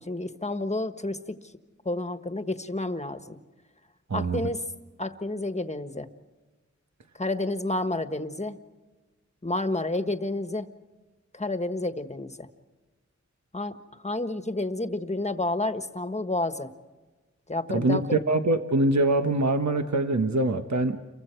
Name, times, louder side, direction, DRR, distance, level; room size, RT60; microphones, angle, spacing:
voice 1, 0.0-1.5 1.8-3.4 4.1-4.6 5.0-6.1 7.2-8.6 9.4-10.7 11.3-12.5 13.5-16.7 17.5-18.2, left 2 dB, 25° left, 9 dB, 1.5 m, -30 dB
voice 2, 4.1-4.4 17.7-18.0 18.3-21.0, right 2 dB, 70° right, 6 dB, 1.3 m, -24 dB
29.0 x 24.0 x 4.6 m, 1.2 s
wide cardioid pair, 70°, 29 cm